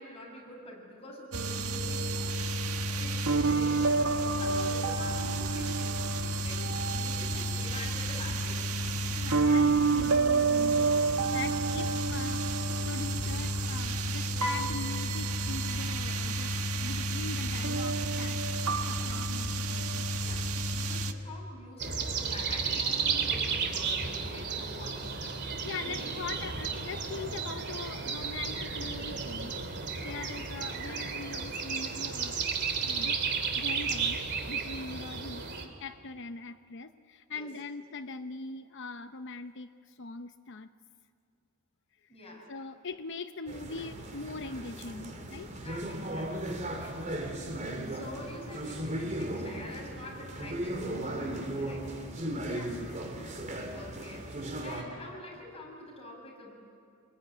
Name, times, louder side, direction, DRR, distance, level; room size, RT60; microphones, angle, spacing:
voice 1, 0.0-2.4 2.8-4.0 4.4-8.7 20.1-25.2 25.8-26.4 30.0-30.6 34.9-35.0 37.3-37.5 42.1-42.6 45.6-52.0 53.7-54.3 54.6-56.5, left 1 dB, 30° left, 0 dB, 6.4 m, -47 dB
sound 1, 1.3-21.1, right 3 dB, 90° right, 1.6 m, -29 dB
voice 2, 9.2-18.4 18.9-20.1 25.4-32.4 32.7-33.3 33.5-34.2 34.5-40.7 42.5-45.5 52.4-53.1, left 3 dB, 55° left, 7 dB, 0.8 m, -42 dB
sound 2, 21.8-35.6, right 5 dB, 50° right, 2.8 m, -33 dB
sound 3, 43.5-54.8, right 1 dB, 35° right, 3.5 m, -37 dB
27.5 x 21.5 x 9.9 m, 2.3 s
head